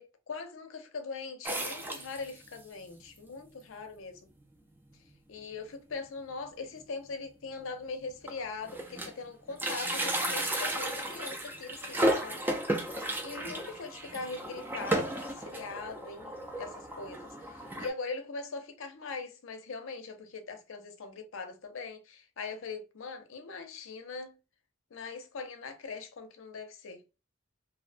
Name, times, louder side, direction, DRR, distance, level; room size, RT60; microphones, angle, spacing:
voice 1, 0.0-4.2 5.3-12.4 12.9-24.4 24.9-27.0, left 4 dB, 80° left, 0.5 m, -41 dB
sound 1, 1.4-2.6 3.2-3.3 3.4-3.5 4.4-4.5 4.9-5.1 5.4-5.5 6.8-6.9 7.6-7.7 8.0-9.2 9.5-17.9, right 1 dB, 10° right, 0.3 m, -34 dB
2.6 x 2.0 x 2.4 m
head